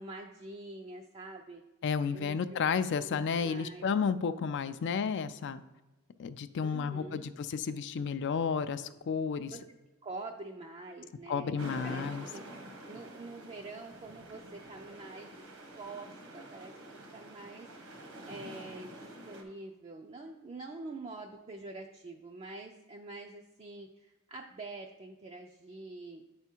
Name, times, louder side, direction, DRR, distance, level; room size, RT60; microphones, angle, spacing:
voice 1, 0.0-1.6 2.1-2.6 3.0-3.9 6.6-7.3 9.5-9.6 10.0-12.1 12.3-12.4 12.9-15.4 15.8-17.7 18.3-26.2, right 2 dB, 25° right, 1 dB, 0.4 m, -46 dB
voice 2, 1.8-5.6 6.2-9.6 11.3-12.2, left 6 dB, 55° left, 12 dB, 0.4 m, -32 dB
sound 1, 11.6-19.4, right 1 dB, 80° right, 1.2 m, -47 dB
8.8 x 3.5 x 4.4 m, 1.1 s
head